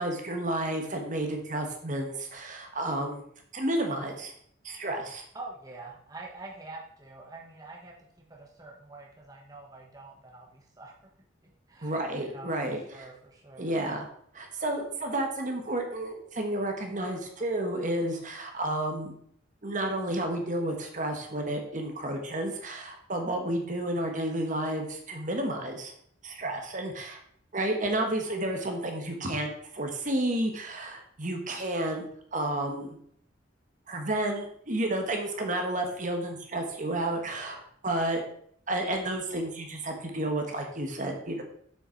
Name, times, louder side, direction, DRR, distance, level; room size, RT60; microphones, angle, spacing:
voice 1, 0.0-3.2 3.5-4.3 4.6-5.2 11.8-13.1 13.6-14.1 14.3-19.1 19.6-25.9 26.2-27.2 27.5-32.1 32.3-33.0 33.9-37.6 37.8-38.2 38.7-41.4, right 1 dB, 45° right, 3 dB, 1.4 m, -31 dB
voice 2, 5.3-7.9 8.3-10.9 11.7-13.8, right 2 dB, 20° right, -1 dB, 1.2 m, -46 dB
7.2 x 6.7 x 4.5 m, 0.65 s
head